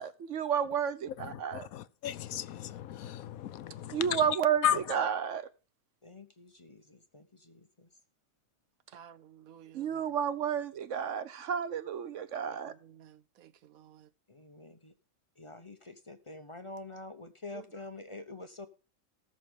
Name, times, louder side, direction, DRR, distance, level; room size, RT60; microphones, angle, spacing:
voice 1, 0.0-1.7 3.9-5.5 9.7-12.7, right 8 dB, 65° right, 1.1 m, -31 dB
voice 2, 1.5-4.0 4.6-4.8, left 10 dB, 85° left, 1.1 m, -34 dB
voice 3, 6.0-7.9 14.3-14.9 15.4-18.7, left 2 dB, 25° left, 0.7 m, -47 dB
voice 4, 8.9-10.0 12.7-14.1 17.5-17.6, right 10 dB, 80° right, 1.2 m, -54 dB
18.5 x 6.2 x 3.6 m
omnidirectional pair, 1.4 m